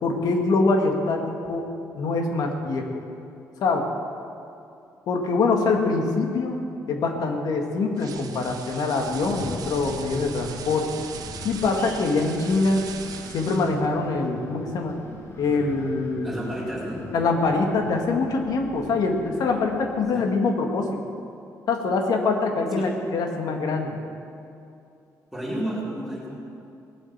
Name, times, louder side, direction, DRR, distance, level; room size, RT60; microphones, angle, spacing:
voice 1, 0.0-1.7 1.9-2.9 3.6-3.9 5.1-6.6 6.9-10.9 11.4-12.8 13.3-15.0 15.4-16.3 17.1-20.9 21.7-24.0, left 3 dB, 70° left, 3 dB, 2.0 m, -24 dB
sound 1, 8.0-13.9, right 7 dB, 65° right, 1.1 m, -40 dB
Wind, 9.0-20.0, left 1 dB, 45° left, 3.4 m, -42 dB
voice 2, 16.2-17.1 20.1-20.4 22.7-23.1 25.3-26.4, right 1 dB, ahead, -9 dB, 4.1 m, -32 dB
19.0 x 8.5 x 7.4 m, 2.6 s
cardioid pair, 115°, 7 cm